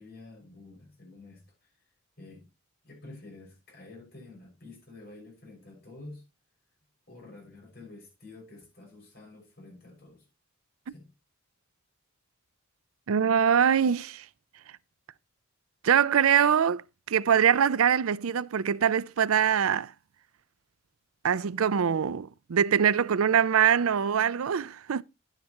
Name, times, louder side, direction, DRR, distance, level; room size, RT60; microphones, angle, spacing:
voice 1, 0.0-1.8 2.2-2.5 2.8-6.2 7.1-10.3 10.9-11.1, left 2 dB, 50° left, 5.9 m, -49 dB
voice 2, 13.1-14.3 15.8-19.9 21.2-25.0, right 8 dB, 85° right, 0.5 m, -23 dB
11.0 x 9.7 x 3.0 m
head